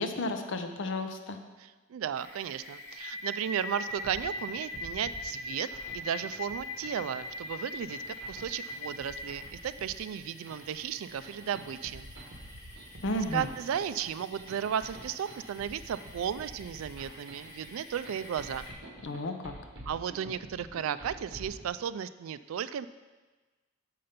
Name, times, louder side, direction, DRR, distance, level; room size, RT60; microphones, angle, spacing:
voice 1, 0.0-1.4 13.0-13.5 19.0-19.5, left 2 dB, 65° left, 6 dB, 0.7 m, -33 dB
voice 2, 1.6-5.7 5.9-12.1 13.3-18.7 19.9-22.9, right 8 dB, 85° right, 15 dB, 0.3 m, -34 dB
sound 1, 2.2-18.7, left 1 dB, 15° left, 1.4 m, -43 dB
sound 2, 3.9-21.7, right 1 dB, 60° right, 1.4 m, -49 dB
6.7 x 5.6 x 5.1 m, 1.3 s
head